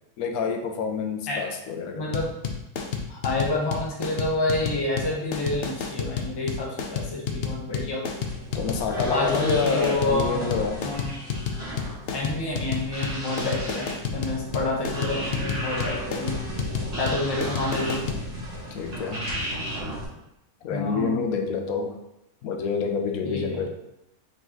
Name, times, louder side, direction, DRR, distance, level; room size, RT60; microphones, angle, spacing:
voice 1, 0.2-2.2 8.5-10.8 18.7-19.2 20.6-21.9 22.4-23.7, left 5 dB, 80° left, 4 dB, 1.1 m, -27 dB
voice 2, 1.9-2.3 3.1-8.1 9.1-10.4 10.8-11.1 12.1-16.4 17.0-18.1 20.7-21.3 23.2-23.6, left 2 dB, 20° left, -3 dB, 0.8 m, -28 dB
sound 1, 2.1-18.2, left 6 dB, 60° left, 0.7 m, -30 dB
sound 2, 8.2-20.1, equal, 25° right, 1.4 m, -34 dB
4.6 x 3.9 x 3.0 m, 0.90 s
omnidirectional pair, 1.5 m